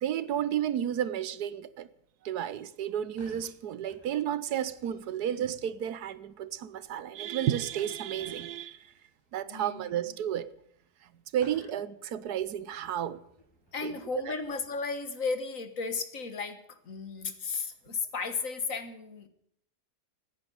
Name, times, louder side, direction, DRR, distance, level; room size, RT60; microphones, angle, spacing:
voice 1, 0.0-1.9 2.2-8.8 9.3-10.5 11.3-13.2 13.8-13.9, right 10 dB, 75° right, 1.3 m, -32 dB
sound 1, 2.8-11.1 11.3-15.0, equal, 15° left, 6.7 m, -61 dB
voice 2, 9.5-10.2 13.7-19.3, left 4 dB, 55° left, 1.9 m, -35 dB
15.5 x 9.7 x 9.4 m
omnidirectional pair, 1.7 m